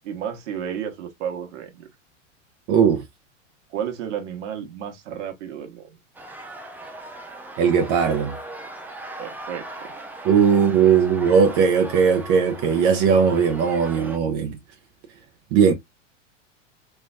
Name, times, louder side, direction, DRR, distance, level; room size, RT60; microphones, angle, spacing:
voice 1, 0.0-1.9 3.7-6.0 9.2-9.9 10.5-11.0, right 9 dB, 65° right, 1.2 m, -33 dB
voice 2, 2.7-3.0 7.6-8.4 10.2-14.6 15.5-15.7, right 6 dB, 45° right, 0.7 m, -18 dB
sound 1, 6.1-14.2, right 2 dB, 5° right, 0.4 m, -38 dB
3.3 x 3.0 x 2.3 m
hypercardioid pair, 105°, 38 cm